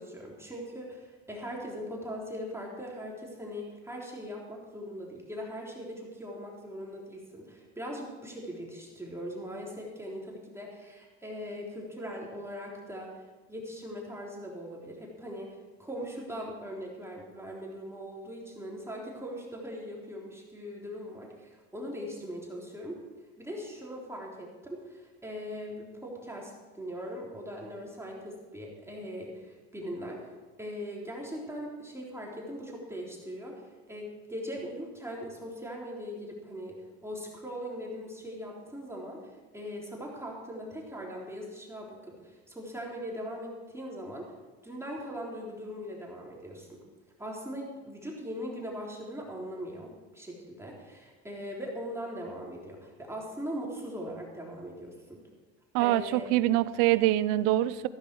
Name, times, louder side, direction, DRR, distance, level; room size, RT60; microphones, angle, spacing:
voice 1, 0.0-13.2 13.5-23.0 23.4-30.3 30.6-44.3 44.6-46.8 47.2-55.2 55.8-56.3, equal, 10° right, -3 dB, 3.5 m, -40 dB
voice 2, 55.7-57.9, right 15 dB, 80° right, 16 dB, 0.6 m, -25 dB
14.5 x 12.0 x 4.7 m, 1.2 s
supercardioid pair, 95°, 30 cm